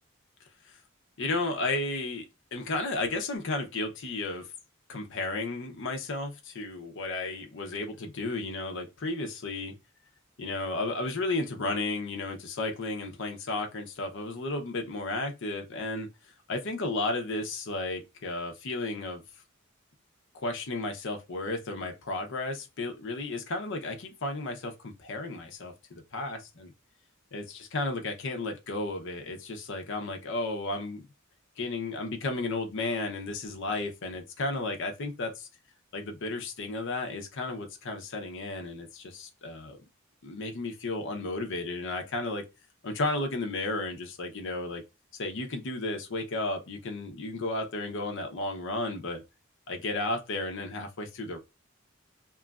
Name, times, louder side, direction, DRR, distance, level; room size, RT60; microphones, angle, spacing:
voice 1, 1.2-2.2 2.5-4.5 4.9-9.7 10.4-16.1 16.5-19.2 20.3-26.7 27.3-31.1 31.6-35.5 35.9-39.8 40.2-42.4 42.8-44.8 45.2-49.2 49.7-51.4, left 2 dB, 65° left, 0.7 m, -33 dB
3.0 x 2.3 x 2.3 m
head